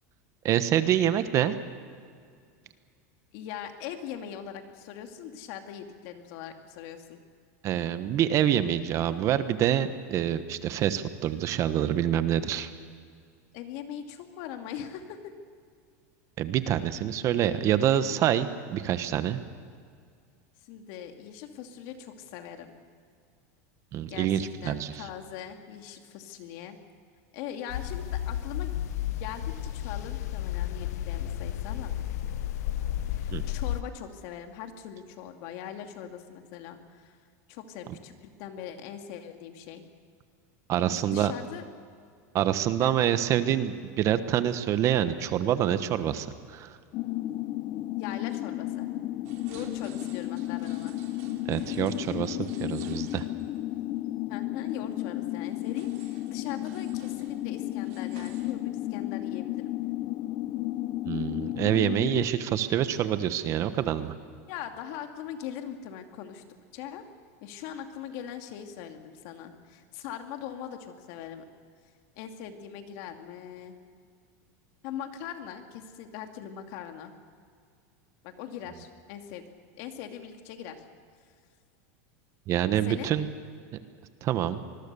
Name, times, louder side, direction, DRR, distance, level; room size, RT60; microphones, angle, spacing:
voice 1, 0.4-1.5 7.6-12.7 16.4-19.4 23.9-25.1 33.3-33.4 40.7-41.3 42.3-46.8 51.5-53.2 61.1-64.1 82.5-83.3 84.2-84.6, right 10 dB, 35° right, 11 dB, 1.2 m, -26 dB
voice 2, 3.3-7.2 13.5-15.3 20.6-22.7 24.1-26.8 27.3-28.7 29.1-31.9 33.1-37.2 37.5-39.8 40.8-41.6 42.8-43.0 48.0-48.9 49.5-50.9 54.3-59.7 64.5-66.4 66.7-67.1 67.4-71.4 72.2-73.8 74.8-77.1 78.2-79.4 79.7-80.8 82.9-83.1, left 9 dB, 55° left, 5 dB, 2.6 m, -41 dB
sound 1, 27.7-33.8, left 11 dB, 85° left, 0.8 m, -32 dB
sound 2, 46.9-62.3, left 16 dB, 40° left, 0.6 m, -33 dB
sound 3, 49.2-53.8 54.0-54.1 54.9-58.5, right 9 dB, 65° right, 2.9 m, -52 dB
25.5 x 21.5 x 7.0 m, 2.1 s
supercardioid pair, 145°, 8 cm